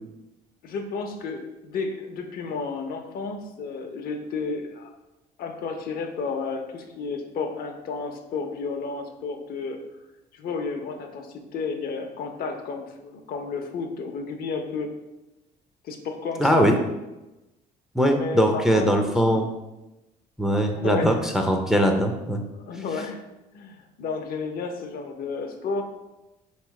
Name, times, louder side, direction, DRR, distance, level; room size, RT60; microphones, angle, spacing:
voice 1, 0.6-4.9 5.4-9.8 10.3-14.9 15.8-16.9 18.1-19.5 20.7-21.5 22.5-23.2 23.5-25.8, left 4 dB, 60° left, 4 dB, 0.7 m, -32 dB
voice 2, 16.4-16.8 17.9-19.5 20.4-22.4, equal, 5° right, 2 dB, 0.5 m, -21 dB
3.5 x 3.1 x 4.7 m, 0.98 s
cardioid pair, 110°, 17 cm